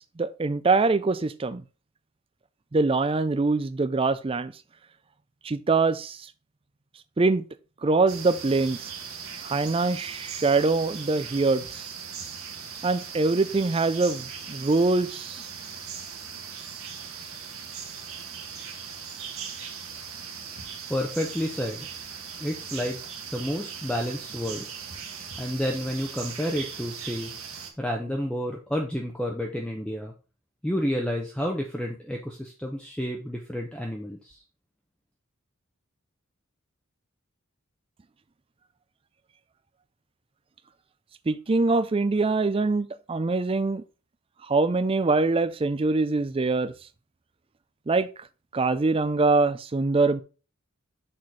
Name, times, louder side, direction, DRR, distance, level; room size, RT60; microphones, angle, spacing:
voice 1, 0.2-1.6 2.7-4.5 5.4-6.2 7.2-7.4 7.8-8.9 9.4-11.8 12.8-15.4 41.3-43.8 44.5-46.7 47.9-48.1 48.5-50.2, right 3 dB, 25° right, 0.4 m, -23 dB
sound 1, 8.1-27.7, right 6 dB, 80° right, 1.5 m, -39 dB
voice 2, 20.9-21.9 22.4-23.0 23.3-24.6 25.4-27.3 27.8-30.1 30.6-34.4, equal, 5° left, 0.7 m, -30 dB
6.5 x 4.3 x 4.6 m
head